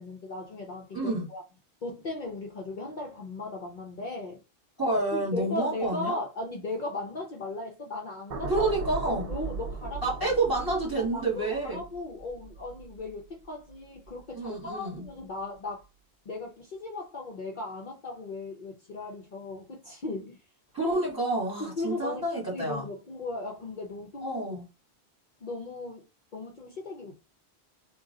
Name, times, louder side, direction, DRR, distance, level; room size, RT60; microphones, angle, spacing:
voice 1, 0.0-1.4 1.8-4.4 5.1-8.7 9.1-10.2 11.0-15.9 16.2-20.4 21.6-24.4 25.4-26.0 26.3-27.2, left 2 dB, 50° left, 0.7 m, -37 dB
voice 2, 0.9-1.3 4.8-6.2 8.5-9.2 10.0-11.8 14.3-15.1 20.7-22.8 24.2-24.6, right 2 dB, 20° right, 1.9 m, -28 dB
sound 1, 8.3-14.6 15.0-15.2, right 4 dB, 45° right, 0.5 m, -39 dB
3.7 x 2.3 x 3.8 m
omnidirectional pair, 1.1 m